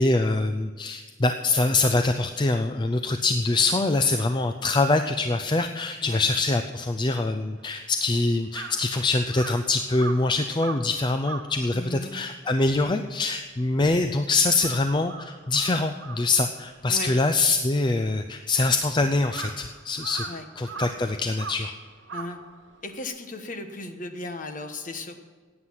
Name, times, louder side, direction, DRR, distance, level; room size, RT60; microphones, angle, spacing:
voice 1, 0.0-20.2 20.6-21.7, left 3 dB, 25° left, 8 dB, 0.4 m, -24 dB
Crow, 7.6-14.1 14.4-23.0, right 4 dB, 65° right, 1.2 m, -41 dB
voice 2, 11.7-12.1 16.9-17.1 20.2-20.5 22.1-22.4 22.8-25.2, left 2 dB, 45° left, 7 dB, 1.2 m, -36 dB
15.5 x 9.6 x 5.8 m, 1.5 s
head